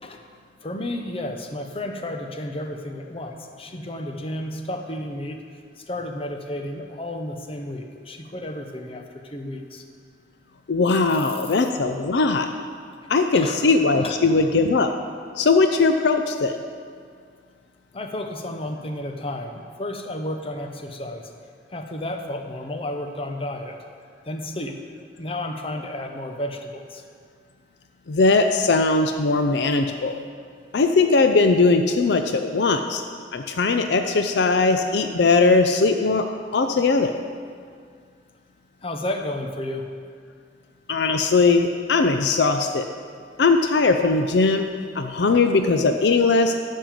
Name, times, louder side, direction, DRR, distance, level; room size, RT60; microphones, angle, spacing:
voice 1, 0.6-5.4 5.8-9.8 13.0-13.7 14.0-14.2 17.9-21.3 21.7-23.8 24.2-24.8 25.2-27.0 38.8-39.9, left 1 dB, 35° left, 4 dB, 0.9 m, -32 dB
voice 2, 10.7-12.5 13.1-14.9 15.4-16.6 28.1-30.1 30.7-33.0 33.3-36.3 36.5-37.2 40.9-42.9 43.4-44.7 44.9-46.5, left 3 dB, 70° left, 7 dB, 0.5 m, -19 dB
12.0 x 5.5 x 7.5 m, 2.1 s
head